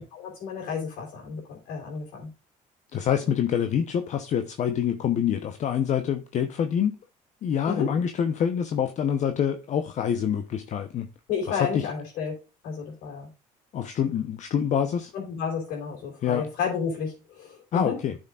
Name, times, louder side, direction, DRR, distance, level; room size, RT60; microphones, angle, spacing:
voice 1, 0.1-2.3 7.7-7.9 11.3-12.3 12.6-13.3 15.1-18.0, left 6 dB, 80° left, 4.0 m, -31 dB
voice 2, 2.9-7.0 7.4-11.1 11.5-11.9 13.7-15.1 16.2-16.5 17.7-18.2, left 8 dB, 55° left, 0.9 m, -26 dB
11.5 x 6.5 x 2.4 m
supercardioid pair, 90°, 15 cm